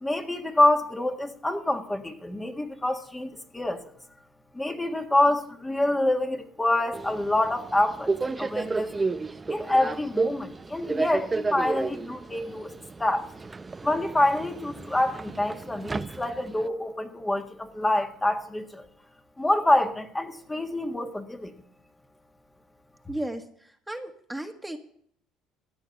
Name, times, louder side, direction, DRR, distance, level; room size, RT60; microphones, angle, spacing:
voice 1, 0.0-3.8 4.5-9.0 9.5-12.7 13.0-13.3 13.8-18.9 19.4-21.5, left 1 dB, 15° left, 4 dB, 1.7 m, -26 dB
Subway metro underground, 6.9-16.7, right 3 dB, 20° right, 0.7 m, -32 dB
voice 2, 23.1-24.8, right 1 dB, 5° right, 5 dB, 1.6 m, -35 dB
15.0 x 9.7 x 7.0 m, 0.63 s
supercardioid pair, 80°, 0 cm